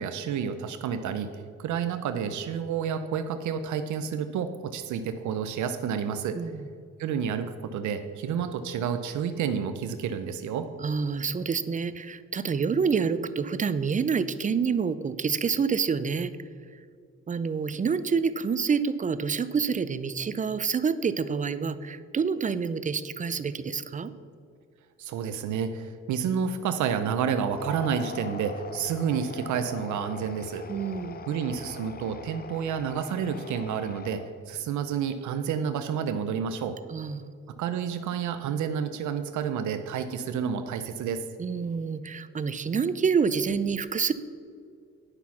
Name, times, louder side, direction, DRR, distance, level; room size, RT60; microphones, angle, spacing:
voice 1, 0.0-6.4 7.0-10.7 25.0-30.7 31.3-36.8 37.6-41.2, right 7 dB, 75° right, 9 dB, 0.6 m, -30 dB
voice 2, 6.3-6.7 10.8-16.3 17.3-24.1 30.7-31.2 36.9-37.3 41.4-44.1, right 5 dB, 25° right, 14 dB, 0.5 m, -27 dB
sound 1, 27.4-34.5, left 5 dB, 30° left, 0.6 m, -42 dB
9.9 x 5.8 x 5.8 m, 2.3 s
cardioid pair, 90°, 30 cm